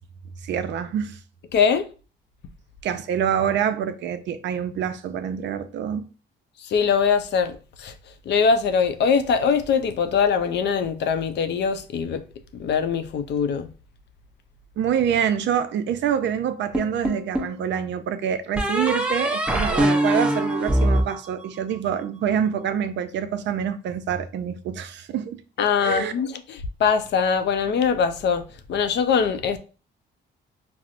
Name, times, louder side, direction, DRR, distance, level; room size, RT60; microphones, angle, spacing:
voice 1, 0.4-1.2 2.8-6.0 14.8-25.4 25.8-26.1, right 8 dB, 65° right, 0.4 m, -26 dB
voice 2, 1.5-1.8 6.6-7.5 7.8-7.9 8.3-12.2 12.5-13.7 25.6-28.4 28.7-29.6, left 6 dB, 60° left, 0.5 m, -22 dB
sound 1, 16.7-17.6 18.6-21.9, right 1 dB, 5° right, 0.7 m, -23 dB
4.2 x 2.0 x 2.5 m
cardioid pair, 90°, 20 cm